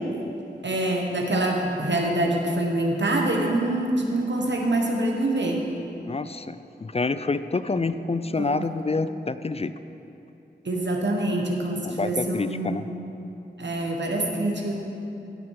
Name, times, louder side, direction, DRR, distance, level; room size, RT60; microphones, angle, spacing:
voice 1, 0.6-5.6 7.8-7.9 8.4-8.6 10.6-13.0 13.6-14.7, right 1 dB, 80° right, 1 dB, 1.3 m, -25 dB
voice 2, 6.1-9.7 11.8-12.9, left 3 dB, 35° left, 12 dB, 0.3 m, -27 dB
16.0 x 6.0 x 4.8 m, 2.9 s
wide cardioid pair, 55°, 18 cm